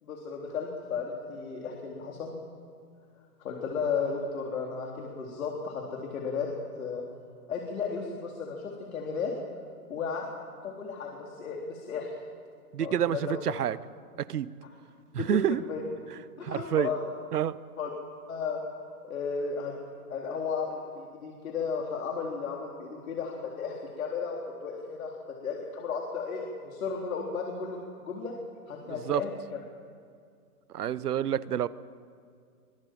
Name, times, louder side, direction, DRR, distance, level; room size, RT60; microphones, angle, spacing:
voice 1, 0.0-2.3 3.4-6.5 6.8-7.0 7.5-9.3 9.9-10.2 10.6-12.1 12.8-13.4 15.2-15.8 16.5-17.0 17.8-17.9 18.3-19.7 20.1-25.2 25.4-28.3 28.7-29.3, left 5 dB, 65° left, -1 dB, 4.0 m, -34 dB
voice 2, 12.7-13.8 14.2-14.5 15.1-15.6 16.4-16.9 17.3-17.6 28.9-29.2 30.7-31.7, right 10 dB, 85° right, 16 dB, 1.2 m, -28 dB
24.5 x 23.0 x 7.7 m, 2.3 s
hypercardioid pair, 175°, 45 cm